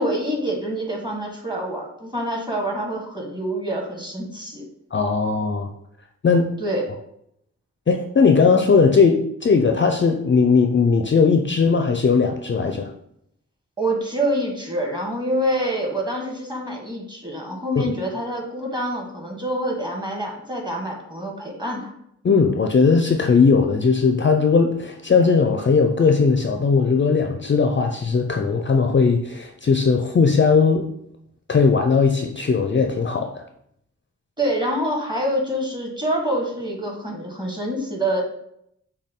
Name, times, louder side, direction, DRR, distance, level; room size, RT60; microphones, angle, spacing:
voice 1, 0.0-4.6 6.6-6.9 13.8-21.9 34.4-38.2, right 1 dB, 15° right, -1 dB, 1.4 m, -26 dB
voice 2, 4.9-5.7 6.2-6.5 7.9-12.9 22.2-30.9 31.5-33.4, left 5 dB, 40° left, 4 dB, 0.4 m, -18 dB
6.3 x 2.3 x 3.6 m, 0.73 s
wide cardioid pair, 60°, 30 cm